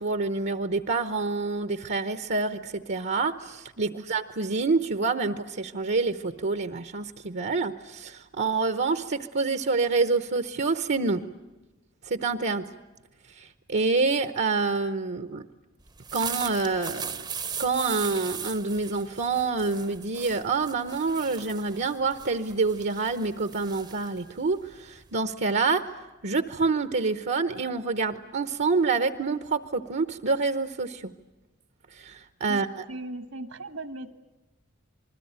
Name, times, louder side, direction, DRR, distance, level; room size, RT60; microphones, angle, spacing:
voice 1, 0.0-11.2 12.0-12.7 13.4-15.5 16.1-17.3 17.6-25.8 26.2-31.1 31.9-32.7, right 4 dB, 55° right, 10 dB, 0.9 m, -27 dB
sound 1, 15.9-25.2, right 6 dB, 20° right, 0.8 m, -39 dB
voice 2, 32.9-34.1, right 2 dB, 75° right, 10 dB, 1.7 m, -38 dB
27.5 x 21.0 x 8.8 m, 1.1 s
head